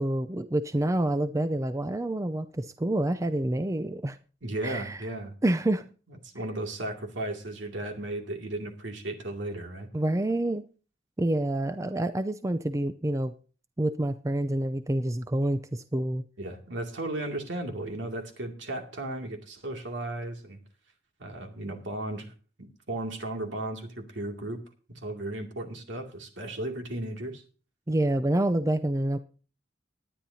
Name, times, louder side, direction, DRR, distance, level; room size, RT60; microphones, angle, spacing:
voice 1, 0.0-4.2 4.6-5.0 5.4-5.8 9.9-10.6 11.2-13.3 13.8-16.2 27.9-29.2, right 1 dB, 15° right, 11 dB, 0.5 m, -27 dB
voice 2, 4.4-5.3 6.3-9.9 16.4-20.6 21.2-22.3 22.6-24.6 24.9-27.4, right 1 dB, 75° right, 3 dB, 2.4 m, -35 dB
19.0 x 10.5 x 2.8 m, 0.36 s
head